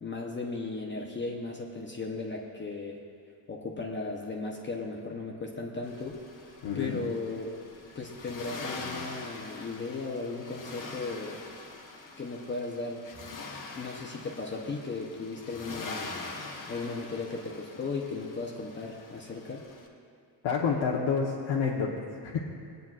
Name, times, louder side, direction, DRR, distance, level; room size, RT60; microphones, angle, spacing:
voice 1, 0.0-3.0 3.5-6.2 6.7-7.5 7.9-11.4 12.2-13.0 13.7-16.1 16.7-19.7, left 3 dB, 25° left, -1 dB, 0.8 m, -36 dB
Accelerating revving vroom, 5.8-19.9, left 3 dB, 45° left, 1.2 m, -44 dB
voice 2, 6.6-7.0 20.4-21.9 22.2-22.5, left 5 dB, 75° left, -4 dB, 1.1 m, -28 dB
19.5 x 9.1 x 2.4 m, 2.3 s
cardioid pair, 150°, 45 cm